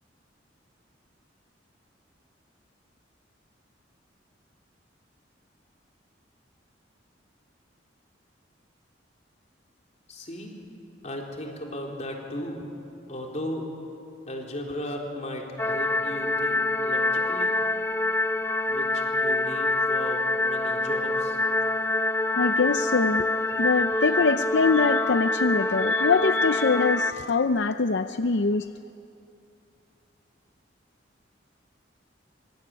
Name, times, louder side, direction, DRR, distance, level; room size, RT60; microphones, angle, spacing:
voice 1, 10.1-10.5 11.0-12.6 13.1-13.7 14.3-17.6 18.7-21.4, left 1 dB, 40° left, 0 dB, 4.0 m, -36 dB
sound 1, 15.6-27.1, left 2 dB, 10° left, 0.6 m, -25 dB
voice 2, 22.3-28.7, left 4 dB, 65° left, 9 dB, 0.6 m, -24 dB
25.5 x 24.5 x 9.7 m, 2.6 s
head